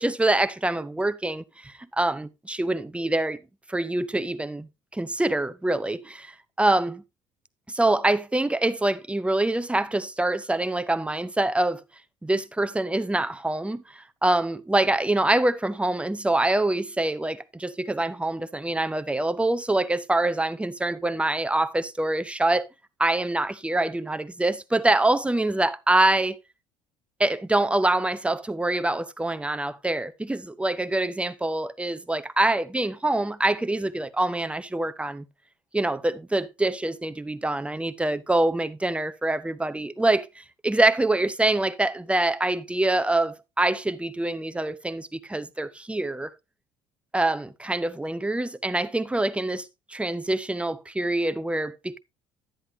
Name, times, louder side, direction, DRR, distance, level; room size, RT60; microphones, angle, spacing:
voice 1, 0.0-3.4 3.7-7.0 7.7-11.8 12.2-22.7 23.0-26.4 27.2-35.2 35.7-46.3 47.1-52.0, right 2 dB, 5° right, 0.7 m, -25 dB
10.5 x 10.0 x 2.6 m
figure-of-eight pair, 60°, 18 cm